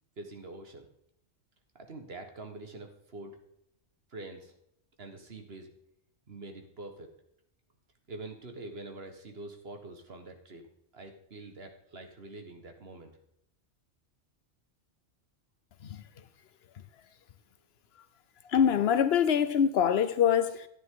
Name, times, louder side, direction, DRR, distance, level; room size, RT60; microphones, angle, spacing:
voice 1, 0.2-0.9 1.8-3.4 4.1-4.5 5.0-5.7 6.3-7.1 8.1-10.7 10.9-13.1, right 2 dB, 55° right, 1.6 m, -45 dB
voice 2, 18.5-20.7, left 8 dB, 60° left, 0.9 m, -24 dB
11.0 x 9.3 x 3.7 m
omnidirectional pair, 1.3 m